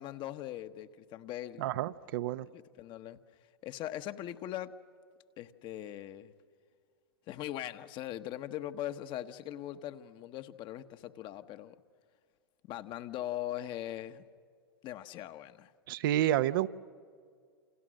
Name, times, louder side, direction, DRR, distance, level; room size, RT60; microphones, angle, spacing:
voice 1, 0.0-1.7 2.5-3.2 3.6-4.7 5.4-6.3 7.3-11.8 12.7-14.2 14.8-15.7, left 13 dB, 40° left, 10 dB, 1.3 m, -40 dB
voice 2, 1.6-2.5 15.9-16.7, right 12 dB, 60° right, 13 dB, 0.8 m, -29 dB
29.0 x 28.0 x 6.5 m, 2.1 s
hypercardioid pair, 100°, 13 cm